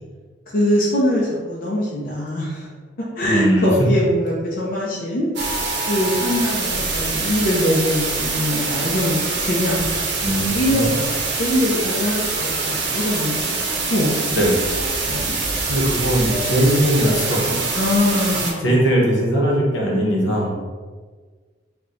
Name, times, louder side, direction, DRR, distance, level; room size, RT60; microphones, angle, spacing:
voice 1, 0.5-2.7 3.1-5.3 5.9-10.0 10.5-13.4 13.9-14.1 14.4-14.5 15.1-15.4 17.7-18.8, left 1 dB, 50° left, -5 dB, 0.5 m, -22 dB
voice 2, 3.2-3.7 10.2-10.8 14.3-14.6 15.3-17.5 18.1-18.3 18.6-20.6, equal, 75° left, -3 dB, 0.8 m, -20 dB
sound 1, 5.4-18.5, right 3 dB, 65° right, 0.6 m, -24 dB
4.4 x 2.2 x 2.5 m, 1.5 s
head